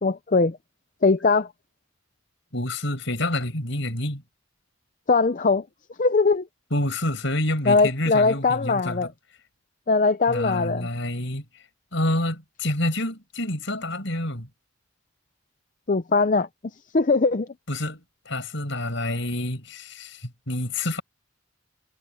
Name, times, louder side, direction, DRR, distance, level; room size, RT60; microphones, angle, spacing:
voice 1, 0.0-0.6 1.0-1.5 5.1-5.6 6.0-6.5 7.7-9.1 9.9-10.9 15.9-16.5 16.9-17.5, left 3 dB, 40° left, 0.5 m, -20 dB
voice 2, 2.5-4.2 6.7-9.1 10.3-11.4 11.9-14.5 17.7-21.0, left 1 dB, 60° left, 6.5 m, -28 dB
head